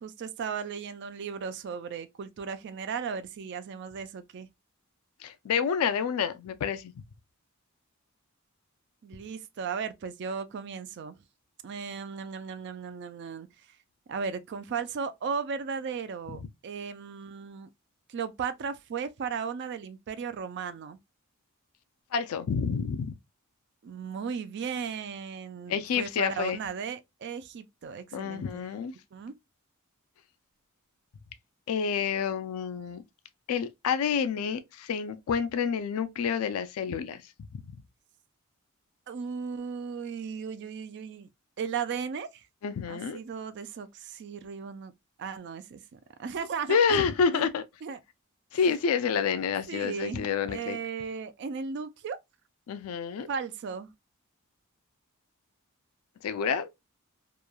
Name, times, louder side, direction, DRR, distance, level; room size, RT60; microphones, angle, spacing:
voice 1, 0.0-4.5 9.0-11.2 11.6-13.5 14.1-17.7 18.1-21.0 23.8-28.7 29.1-29.4 39.1-41.3 41.6-42.5 42.9-44.9 45.2-47.0 47.3-47.5 47.8-48.0 49.7-52.2 53.3-53.9, right 6 dB, 50° right, 0.3 m, -36 dB
voice 2, 5.2-6.9 22.1-23.2 25.7-26.6 28.1-28.9 31.7-33.0 33.5-37.2 37.5-37.6 42.6-43.2 46.7-47.6 48.5-50.8 52.7-53.3 56.2-56.7, left 6 dB, 75° left, 0.3 m, -28 dB
3.0 x 2.2 x 2.2 m
head